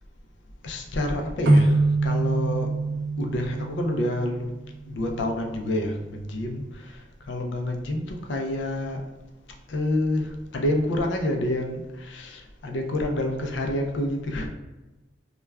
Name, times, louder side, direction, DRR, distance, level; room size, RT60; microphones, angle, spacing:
voice 1, 0.6-2.7 3.2-4.5 4.8-7.0 7.3-9.0 9.7-14.5, left 1 dB, 65° left, 3 dB, 0.4 m, -28 dB
sound 1, 1.5-5.0, right 2 dB, 70° right, 0.4 m, -24 dB
2.3 x 2.1 x 3.2 m, 1.1 s
head